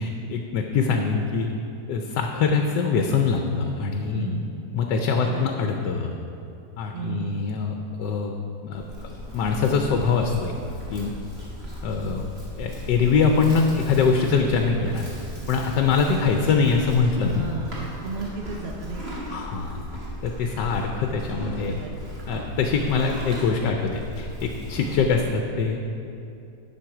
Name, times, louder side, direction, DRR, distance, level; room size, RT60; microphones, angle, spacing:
voice 1, 0.0-1.5 1.9-4.3 4.7-6.1 6.8-8.3 8.6-8.8 9.3-10.5 10.9-11.1 11.8-12.2 12.6-15.1 15.5-17.5 19.3-21.7 22.3-25.8, left 5 dB, 75° left, 3 dB, 1.3 m, -23 dB
voice 2, 4.1-4.7 5.2-5.5 6.9-7.5 17.3-19.2 21.7-21.9, right 5 dB, 70° right, 1 dB, 0.6 m, -34 dB
Livestock farm animals working animals, 8.7-25.2, left 1 dB, 35° right, 2.2 m, -37 dB
10.5 x 6.7 x 4.8 m, 2.8 s
omnidirectional pair, 1.9 m